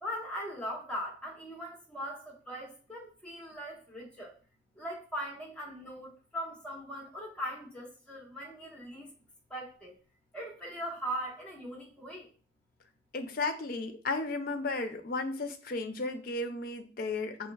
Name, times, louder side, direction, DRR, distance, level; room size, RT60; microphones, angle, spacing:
voice 1, 0.0-4.3 4.8-9.1 9.5-9.9 10.3-12.3, equal, 5° left, 1.1 m, -40 dB
voice 2, 13.1-17.5, left 3 dB, 50° left, 0.5 m, -34 dB
5.5 x 3.1 x 2.3 m
head